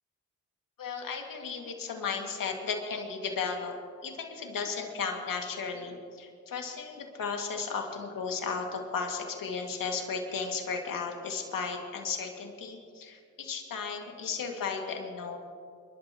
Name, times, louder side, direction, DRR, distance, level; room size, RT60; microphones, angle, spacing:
voice 1, 0.8-3.8 4.0-15.4, left 5 dB, 75° left, 2 dB, 2.2 m, -35 dB
29.0 x 12.0 x 3.0 m, 2.2 s
cardioid pair, 55°, 34 cm